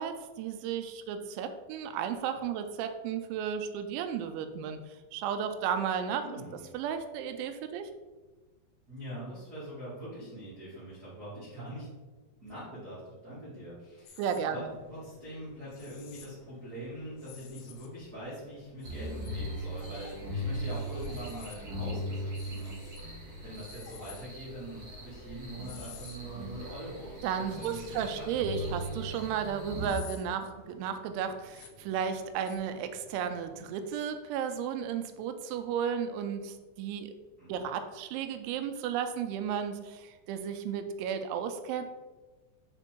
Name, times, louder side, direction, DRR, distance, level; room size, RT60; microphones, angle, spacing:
voice 1, 0.0-6.3 6.7-7.9 14.2-14.7 27.2-37.1 37.5-41.8, right 7 dB, 90° right, 8 dB, 3.0 m, -34 dB
voice 2, 6.2-6.6 8.9-11.9 12.4-28.2 28.6-29.0 37.4-37.6, right 1 dB, 70° right, -11 dB, 0.9 m, -43 dB
sound 1, 14.1-14.4 15.7-16.3 17.2-18.0 18.8-19.3 19.8-20.2 20.7-21.6 22.4-23.0 23.6-24.2 25.6-26.2 27.6-28.3 29.8-30.2 31.5-31.7 32.4-32.6, left 9 dB, 90° left, 3.1 m, -51 dB
sound 2, 14.6-33.9, right 1 dB, 45° left, 1.4 m, -58 dB
sound 3, 18.8-29.9, equal, 45° right, 2.6 m, -39 dB
6.8 x 3.5 x 4.4 m, 1.2 s
omnidirectional pair, 5.3 m